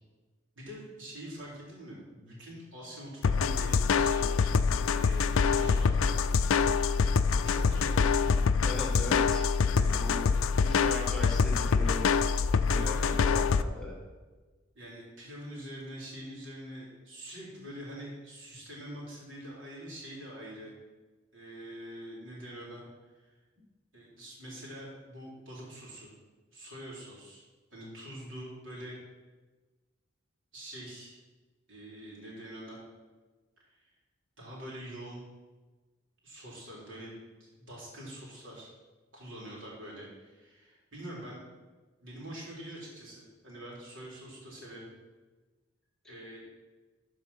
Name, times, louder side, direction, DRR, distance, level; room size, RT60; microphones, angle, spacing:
voice 1, 0.6-4.5 4.8-6.2 7.4-8.4 9.8-10.7 12.7-13.2 14.8-20.7 21.3-23.3 23.9-26.1 26.5-27.4 27.7-29.0 30.5-31.2 31.7-32.8 33.8-33.9 34.4-35.2 36.2-38.7 39.1-41.4 42.0-44.9 46.0-46.4, equal, 65° right, -4 dB, 3.6 m, -45 dB
sound 1, 3.2-13.6, left 5 dB, 90° left, 0.4 m, -25 dB
voice 2, 8.6-9.4 10.0-10.2 10.7-12.1 12.7-13.9, left 2 dB, 5° left, -3 dB, 1.8 m, -39 dB
13.0 x 4.8 x 5.6 m, 1.3 s
head